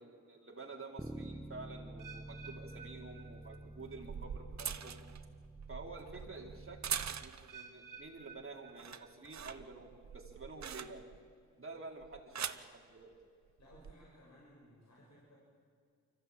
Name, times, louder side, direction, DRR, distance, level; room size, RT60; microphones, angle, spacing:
voice 1, 0.0-5.0 5.7-6.8 7.2-11.1 11.6-12.5 12.9-13.1, right 3 dB, 40° right, 0 dB, 4.2 m, -49 dB
Bass guitar, 1.0-7.2, right 1 dB, 5° right, 1.3 m, -49 dB
sound 1, 2.0-4.0 4.3-4.7 5.4-5.5 7.5-9.4 9.8-10.2 10.8-10.9, right 5 dB, 85° right, 1.8 m, -55 dB
sound 2, 2.4-2.5 3.7-7.6 8.0-8.4 8.7-11.3 12.0-12.7 13.6-13.9, right 8 dB, 60° right, 1.0 m, -43 dB
voice 2, 13.6-15.4, equal, 55° left, -4 dB, 6.4 m, -60 dB
24.5 x 15.5 x 9.1 m, 2.2 s
cardioid pair, 50°, 32 cm